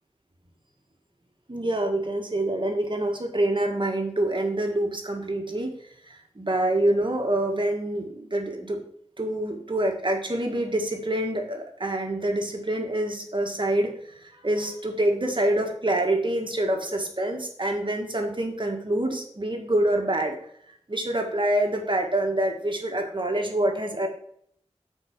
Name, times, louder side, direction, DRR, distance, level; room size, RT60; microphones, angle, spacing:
voice 1, 1.5-5.7 6.0-8.8 9.2-20.4 20.9-24.1, right 1 dB, 45° right, 2 dB, 1.6 m, -26 dB
6.3 x 4.8 x 6.6 m, 0.67 s
wide cardioid pair, 60°, 12 cm